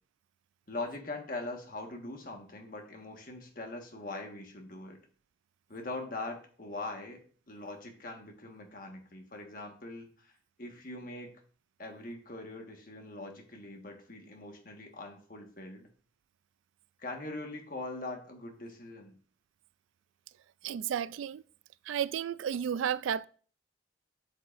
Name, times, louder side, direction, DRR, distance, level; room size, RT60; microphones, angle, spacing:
voice 1, 0.7-5.0 5.7-10.3 10.6-11.3 11.8-15.9 17.0-19.1, left 2 dB, 45° left, 1.5 m, -42 dB
voice 2, 20.6-21.4 21.9-23.3, right 8 dB, 90° right, 0.3 m, -32 dB
7.9 x 7.8 x 2.5 m
head